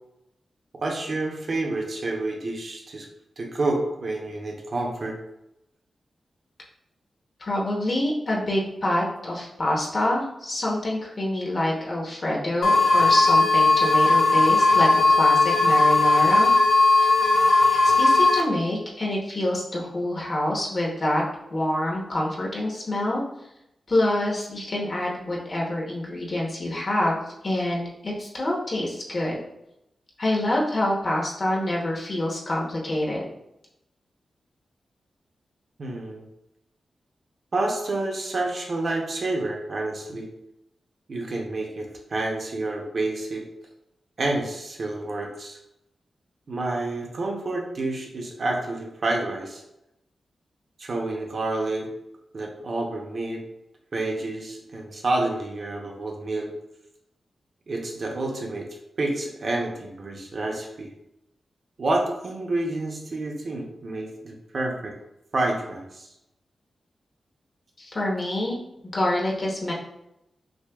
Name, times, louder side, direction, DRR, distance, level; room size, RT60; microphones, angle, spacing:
voice 1, 0.8-3.1 3.4-5.2 35.8-36.3 37.5-40.3 41.1-43.5 44.2-45.6 46.5-49.6 50.8-51.9 52.3-53.4 53.9-56.5 57.7-58.7 59.0-60.9 61.8-65.0 65.3-66.1, right 2 dB, 45° right, 0 dB, 0.6 m, -29 dB
voice 2, 7.4-16.5 17.0-17.1 17.8-21.2 21.5-23.2 23.9-27.2 27.4-29.4 30.2-33.2 67.8-68.6 68.9-69.7, left 1 dB, 35° left, -3 dB, 0.8 m, -26 dB
sound 1, 12.6-18.4, left 3 dB, 55° left, 0.5 m, -18 dB
6.0 x 2.2 x 2.3 m, 0.84 s
wide cardioid pair, 155°, 0 cm